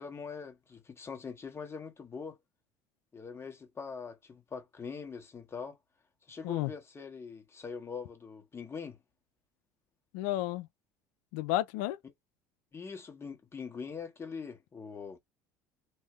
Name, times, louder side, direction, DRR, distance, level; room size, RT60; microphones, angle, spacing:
voice 1, 0.0-2.4 3.1-5.8 6.3-9.0 12.0-12.1 12.7-15.2, left 5 dB, 25° left, 1.1 m, -43 dB
voice 2, 10.1-10.7 11.3-12.0, left 15 dB, 80° left, 0.5 m, -31 dB
3.1 x 2.1 x 3.0 m
supercardioid pair, 95°, 10 cm